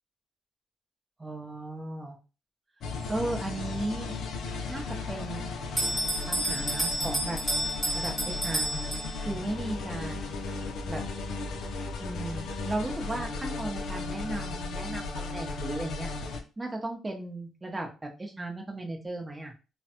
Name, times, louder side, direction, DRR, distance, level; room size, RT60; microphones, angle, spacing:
voice 1, 1.2-2.2 3.1-4.1 4.7-5.5 6.3-7.4 7.9-8.8 9.2-10.4 10.9-11.1 12.0-16.1 16.6-19.5, right 2 dB, 20° right, 2 dB, 0.8 m, -36 dB
sound 1, 2.8-16.4, left 3 dB, 70° left, 0.5 m, -35 dB
Bell, 5.8-9.5, right 1 dB, ahead, 1.0 m, -31 dB
3.2 x 2.1 x 2.8 m, 0.32 s
cardioid pair, 90°, 0 cm